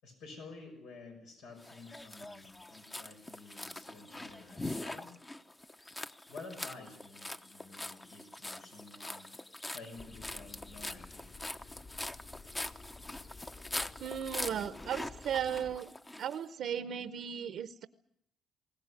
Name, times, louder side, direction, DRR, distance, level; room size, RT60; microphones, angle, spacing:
voice 1, 0.0-5.1 6.3-9.3 9.7-11.3, left 3 dB, 85° left, 3 dB, 5.9 m, -51 dB
sound 1, 1.6-16.4, left 1 dB, 20° left, 0.9 m, -43 dB
sound 2, 10.0-15.8, left 3 dB, 35° left, 3.8 m, -53 dB
voice 2, 14.0-15.9 16.2-17.9, right 8 dB, 70° right, 12 dB, 0.8 m, -36 dB
21.5 x 18.0 x 9.7 m, 0.73 s
cardioid pair, 90°, 0 cm